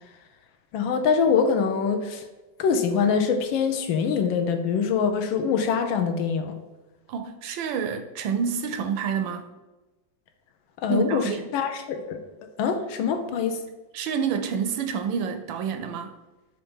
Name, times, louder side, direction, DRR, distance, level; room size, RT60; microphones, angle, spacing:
voice 1, 0.7-2.2 2.6-6.5 10.8-12.2 12.6-13.6, left 6 dB, 75° left, 1.3 m, -24 dB
voice 2, 7.1-9.5 10.9-11.5 13.9-16.1, right 6 dB, 75° right, 1.2 m, -28 dB
6.8 x 2.5 x 5.4 m
omnidirectional pair, 2.3 m